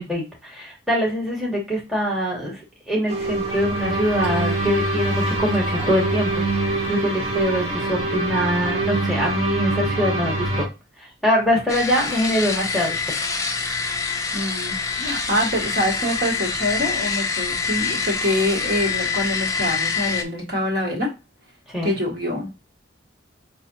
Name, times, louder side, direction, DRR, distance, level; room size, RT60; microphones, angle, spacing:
voice 1, 0.0-2.6 2.9-10.6 11.0-13.3 21.7-22.0, equal, ahead, -3 dB, 1.2 m, -24 dB
sound 1, 3.1-10.6, right 2 dB, 35° right, 0.9 m, -24 dB
sound 2, 11.7-20.2, left 5 dB, 15° left, 0.4 m, -26 dB
voice 2, 14.3-21.1 21.8-22.5, left 1 dB, 55° right, -2 dB, 1.7 m, -25 dB
5.7 x 2.6 x 2.7 m, 0.28 s
head